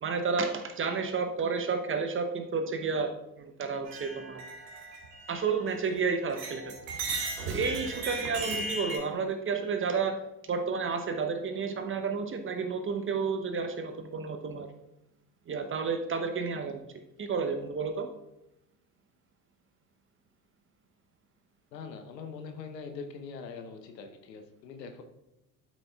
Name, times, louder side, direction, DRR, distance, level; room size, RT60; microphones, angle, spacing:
voice 1, 0.0-3.1 3.4-4.4 5.3-6.7 7.5-14.7 15.5-16.9 17.2-18.1, right 5 dB, 25° right, 7 dB, 0.8 m, -31 dB
sound 1, 3.9-6.0 6.3-9.0, right 3 dB, 60° right, 2.7 m, -37 dB
voice 2, 21.7-25.0, left 5 dB, 75° left, 7 dB, 0.9 m, -42 dB
12.0 x 6.0 x 2.3 m, 0.89 s
figure-of-eight pair, 60°, 50 cm